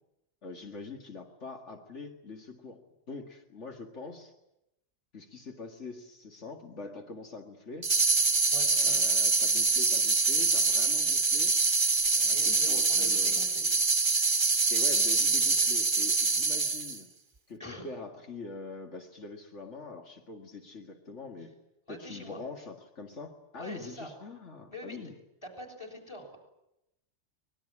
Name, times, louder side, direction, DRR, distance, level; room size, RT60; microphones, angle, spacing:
voice 1, 0.4-2.8 3.1-4.3 5.1-7.9 8.8-11.5 12.1-13.5 14.7-17.1 17.5-21.5 21.9-25.1, left 3 dB, 80° left, 3 dB, 2.4 m, -44 dB
sound 1, 7.8-17.0, right 4 dB, 25° right, 1.1 m, -25 dB
voice 2, 8.5-9.0 12.3-13.6 17.6-17.8 21.9-22.4 23.6-24.1 24.7-25.0 25.4-26.4, left 1 dB, 25° left, 5 dB, 6.5 m, -44 dB
24.0 x 21.5 x 9.9 m, 0.87 s
omnidirectional pair, 1.2 m